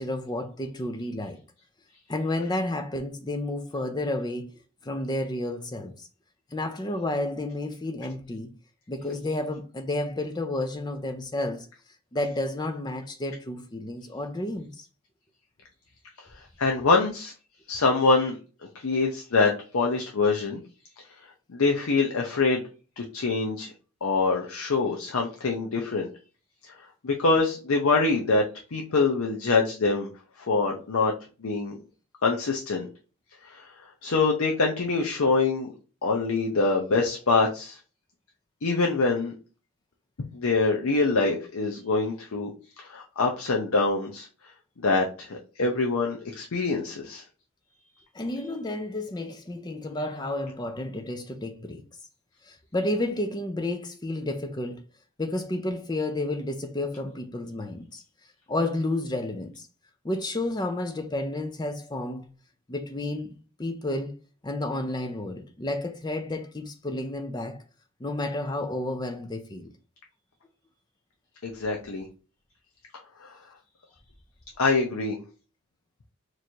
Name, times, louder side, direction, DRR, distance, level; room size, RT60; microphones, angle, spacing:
voice 1, 0.0-1.4 2.1-4.5 4.8-6.1 6.5-8.5 8.9-11.7 12.1-14.9 48.1-51.8 52.5-54.8 55.2-58.0 58.5-59.7 60.0-62.3 62.7-63.3 63.6-64.1 64.4-67.6 68.0-69.7, left 1 dB, 20° left, 0.5 m, -31 dB
voice 2, 16.4-17.3 17.7-18.3 18.7-20.6 21.5-22.6 23.0-23.7 24.0-26.1 26.6-26.7 27.0-28.4 28.7-30.1 30.4-31.1 31.4-31.7 32.2-32.9 33.4-33.7 34.0-35.7 36.0-37.8 38.6-39.3 40.3-42.5 42.8-44.3 44.8-47.2 71.4-72.1 73.2-73.4 74.6-75.2, left 3 dB, 75° left, 0.6 m, -25 dB
3.0 x 2.6 x 4.3 m
head